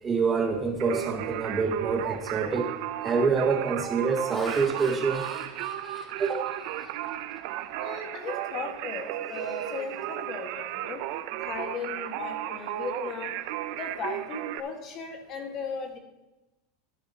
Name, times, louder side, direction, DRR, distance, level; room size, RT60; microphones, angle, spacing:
voice 1, 0.0-2.7 3.0-5.3 6.2-6.5, right 5 dB, 15° right, 3 dB, 0.8 m, -26 dB
Singing, 0.8-14.6, right 13 dB, 50° right, 0.5 m, -35 dB
Laughter, 2.2-2.4 3.0-3.3 3.9-7.7 8.2-8.4 8.8-10.7, left 1 dB, 10° left, 1.1 m, -46 dB
voice 2, 7.8-11.0 11.4-13.3 13.7-16.0, left 5 dB, 30° left, 4 dB, 1.6 m, -37 dB
13.0 x 10.5 x 2.9 m, 1.0 s
supercardioid pair, 165°, 0 cm